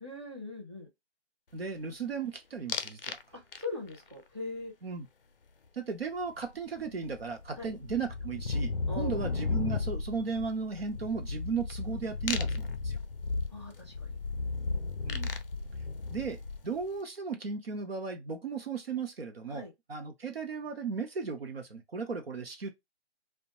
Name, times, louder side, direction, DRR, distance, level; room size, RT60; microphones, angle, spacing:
voice 1, 0.0-0.9 3.6-4.7 7.6-7.7 8.9-9.2 13.5-14.1 19.5-19.7, left 2 dB, 25° right, 0.6 m, -40 dB
voice 2, 1.5-3.2 4.8-5.1 5.7-13.0 15.0-15.3 16.1-19.6 19.9-22.7, right 5 dB, 60° right, 0.7 m, -36 dB
sound 1, 2.7-3.2 3.5-4.0 6.4-6.5 6.8-16.8, left 4 dB, 55° left, 0.4 m, -34 dB
2.4 x 2.1 x 2.9 m
hypercardioid pair, 180°, 34 cm